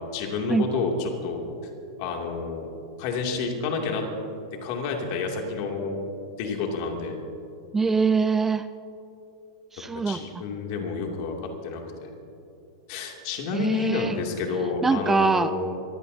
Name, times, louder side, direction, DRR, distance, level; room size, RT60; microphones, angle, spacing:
voice 1, 0.0-1.4 2.0-2.7 3.0-4.0 4.6-6.0 6.4-7.2 10.1-11.3 11.6-12.1 12.9-15.7, left 4 dB, 55° left, 1 dB, 2.7 m, -29 dB
voice 2, 7.7-8.7 9.7-10.4 13.5-14.2 14.8-15.5, right 4 dB, 15° right, 13 dB, 0.4 m, -23 dB
23.5 x 15.5 x 2.8 m, 2.8 s
hypercardioid pair, 110°, 2 cm